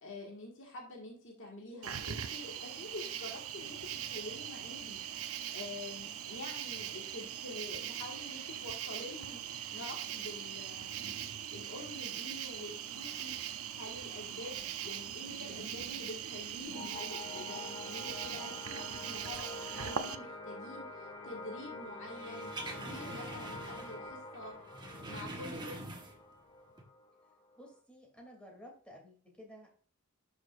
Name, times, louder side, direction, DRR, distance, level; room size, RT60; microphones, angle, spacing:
voice 1, 0.0-3.8 4.1-13.3 13.7-24.5 25.0-25.8, left 2 dB, 60° left, -1 dB, 1.9 m, -47 dB
Cricket, 1.8-20.2, right 9 dB, 75° right, 0.7 m, -41 dB
sound 1, 16.7-27.8, left 2 dB, 25° left, 1.8 m, -47 dB
sound 2, 22.1-24.1 24.3-26.4 26.7-26.8, right 2 dB, 20° right, 1.2 m, -45 dB
voice 2, 27.6-29.7, equal, 5° left, 0 dB, 2.9 m, -53 dB
11.0 x 6.4 x 2.6 m, 0.42 s
head